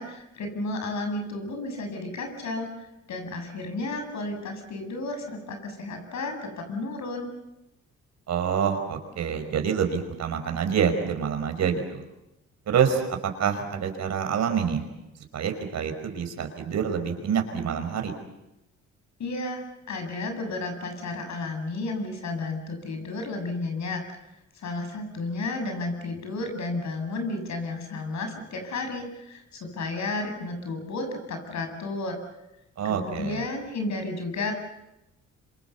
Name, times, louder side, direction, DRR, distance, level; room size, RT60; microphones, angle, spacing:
voice 1, 0.0-2.7 3.1-7.3 19.2-24.0 24.6-32.2 32.8-34.5, left 2 dB, 65° left, 5 dB, 7.6 m, -32 dB
voice 2, 8.3-12.0 12.7-14.8 15.3-18.1 32.8-33.4, right 7 dB, 65° right, 6 dB, 5.3 m, -27 dB
26.5 x 26.0 x 7.2 m, 0.92 s
cardioid pair, 90°, 30 cm